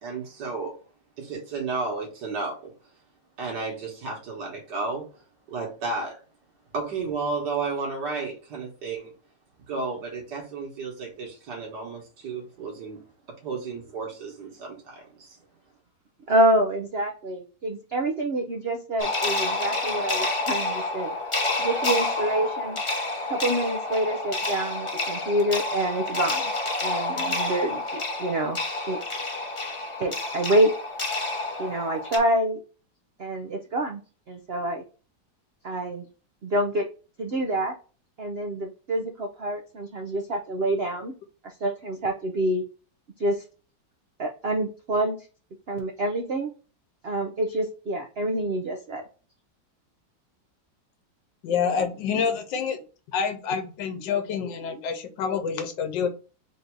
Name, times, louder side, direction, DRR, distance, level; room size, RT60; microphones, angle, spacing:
voice 1, 0.0-0.8 1.2-2.7 3.4-5.1 5.5-6.2 6.7-9.1 9.6-13.0 13.4-15.4, right 4 dB, 70° right, 1.8 m, -32 dB
voice 2, 16.3-21.2 21.6-22.8 23.3-26.5 26.8-28.6 28.9-29.0 30.0-30.7 31.6-32.6 33.2-34.0 34.3-34.8 35.6-36.0 36.4-36.9 37.2-37.7 38.2-41.1 41.6-42.6 43.2-43.4 44.2-45.2 45.7-46.5 47.0-49.0, right 1 dB, 90° right, 0.5 m, -27 dB
sound 1, 19.0-32.2, left 2 dB, 35° left, 0.4 m, -29 dB
voice 3, 51.4-52.8 53.1-56.1, left 6 dB, 80° left, 1.5 m, -27 dB
4.1 x 2.6 x 4.5 m
omnidirectional pair, 2.0 m